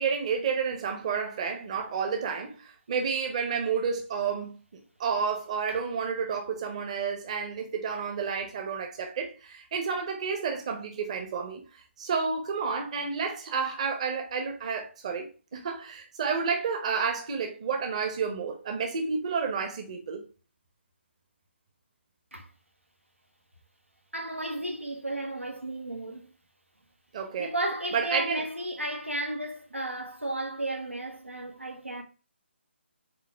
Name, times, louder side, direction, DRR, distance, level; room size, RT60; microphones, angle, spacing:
voice 1, 0.0-4.6 5.0-11.6 12.0-15.3 15.5-20.3 27.1-27.5 27.9-28.4, right 5 dB, 30° right, 1.0 m, -30 dB
voice 2, 24.1-26.3 27.4-32.0, right 1 dB, 90° right, 1.5 m, -33 dB
5.0 x 4.1 x 4.6 m
figure-of-eight pair, 145°, 7 cm